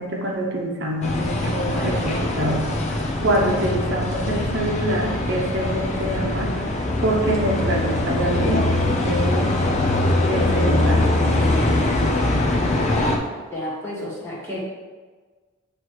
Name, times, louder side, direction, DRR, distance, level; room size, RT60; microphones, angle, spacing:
voice 1, 0.0-2.7 3.2-6.6 7.0-9.5 10.3-11.1, right 1 dB, 55° right, -2 dB, 1.0 m, -25 dB
sound 1, 1.0-13.2, left 2 dB, 30° left, 0.7 m, -22 dB
voice 2, 13.5-14.6, left 1 dB, 10° left, -7 dB, 1.5 m, -32 dB
8.1 x 3.3 x 4.7 m, 1.4 s
head